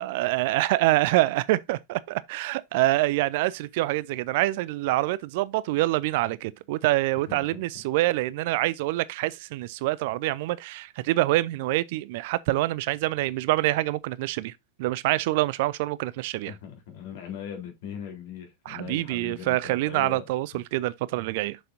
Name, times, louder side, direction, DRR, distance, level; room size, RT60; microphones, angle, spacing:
voice 1, 0.0-14.5 14.8-16.5 18.7-21.6, right 18 dB, 50° right, 0.4 m, -26 dB
voice 2, 7.3-7.6 16.5-20.3, left 8 dB, 50° left, 3.6 m, -40 dB
7.6 x 6.7 x 2.6 m
figure-of-eight pair, 90°, 0 cm